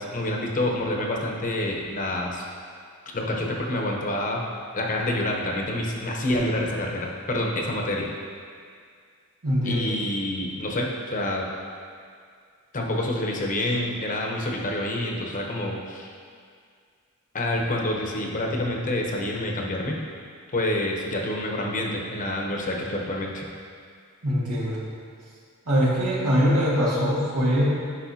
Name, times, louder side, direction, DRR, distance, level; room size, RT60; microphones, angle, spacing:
voice 1, 0.0-2.4 3.1-4.4 4.7-8.1 9.6-11.5 12.7-16.1 17.3-20.0 20.5-23.4, left 1 dB, 35° left, 0 dB, 0.8 m, -27 dB
voice 2, 9.4-10.0 24.2-24.8 25.7-27.7, equal, 90° right, -7 dB, 1.8 m, -22 dB
10.0 x 5.3 x 2.8 m, 2.2 s
head